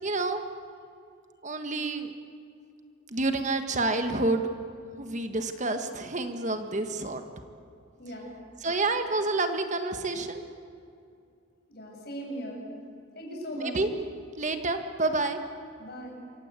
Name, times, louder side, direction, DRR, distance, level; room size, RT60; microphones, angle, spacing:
voice 1, 0.0-0.4 1.4-2.1 3.1-4.5 5.0-7.2 8.6-10.4 13.5-13.9 14.4-15.4, right 2 dB, 35° right, 7 dB, 1.5 m, -28 dB
voice 2, 8.0-8.4 11.7-12.6 13.1-13.8 15.8-16.2, equal, 50° left, 0 dB, 7.3 m, -38 dB
28.0 x 24.5 x 8.3 m, 2.5 s
head